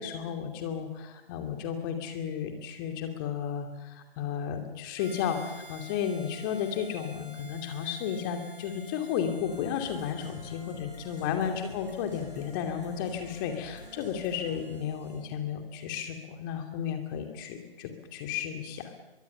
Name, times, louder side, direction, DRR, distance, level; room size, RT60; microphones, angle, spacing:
voice 1, 0.0-18.9, left 8 dB, 20° left, 5 dB, 2.6 m, -33 dB
Harmonica, 5.0-15.3, right 1 dB, 45° right, 4.2 m, -52 dB
sound 1, 9.4-14.7, left 2 dB, 65° left, 7.8 m, -48 dB
24.0 x 23.0 x 6.9 m, 1.0 s
figure-of-eight pair, 140°, 30 cm